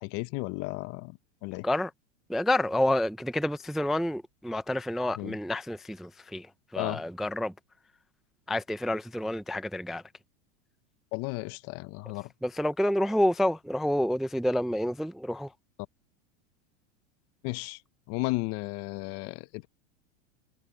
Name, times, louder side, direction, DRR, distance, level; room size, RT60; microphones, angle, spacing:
voice 1, 0.0-1.1 1.4-1.7 5.2-5.3 6.8-7.0 11.1-12.3 17.4-17.8 18.1-19.7, left 24 dB, 40° left, 0.6 m, -34 dB
voice 2, 2.3-7.5 8.5-10.0 12.4-15.5, left 1 dB, ahead, 0.4 m, -29 dB
supercardioid pair, 135°, 37 cm